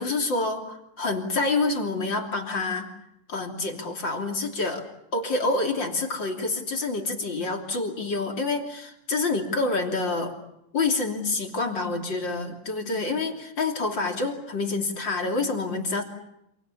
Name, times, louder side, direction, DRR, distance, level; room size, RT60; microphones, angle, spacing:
voice 1, 0.0-2.9 3.3-4.9 5.1-10.4 10.7-16.0, left 3 dB, 30° left, 3 dB, 2.8 m, -27 dB
28.5 x 28.0 x 7.0 m, 0.81 s
omnidirectional pair, 5.6 m